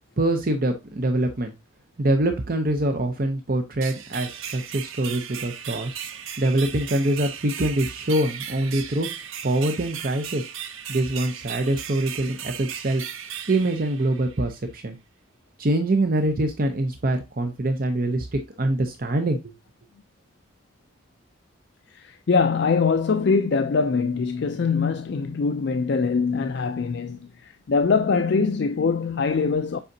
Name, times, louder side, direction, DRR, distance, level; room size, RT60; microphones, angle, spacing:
voice 1, 0.2-1.5 2.0-5.9 6.4-9.1 9.4-10.5 10.9-13.0 13.5-15.0 15.6-19.5, right 1 dB, 45° right, 0.7 m, -24 dB
sound 1, 3.8-14.5, right 8 dB, 80° right, 0.8 m, -36 dB
voice 2, 21.9-29.8, left 5 dB, 55° left, 0.4 m, -23 dB
7.9 x 4.9 x 2.7 m
head